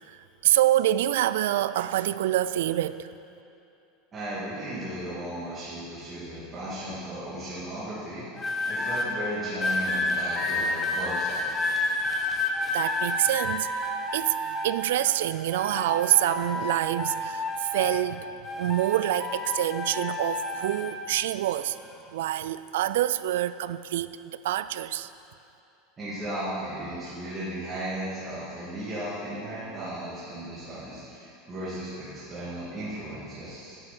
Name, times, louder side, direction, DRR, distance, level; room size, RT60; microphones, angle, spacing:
voice 1, 0.1-3.1 12.7-13.7 14.1-14.4 14.6-21.8 22.1-25.1, right 13 dB, 85° right, 14 dB, 0.3 m, -26 dB
voice 2, 4.1-11.6 26.0-33.8, right 1 dB, 15° right, -11 dB, 2.3 m, -36 dB
sound 1, 8.4-9.1 9.6-15.1 15.5-18.1 18.4-21.0 21.7-22.0, left 2 dB, 10° left, 0.9 m, -30 dB
10.5 x 7.8 x 7.5 m, 2.7 s
supercardioid pair, 180°, 0 cm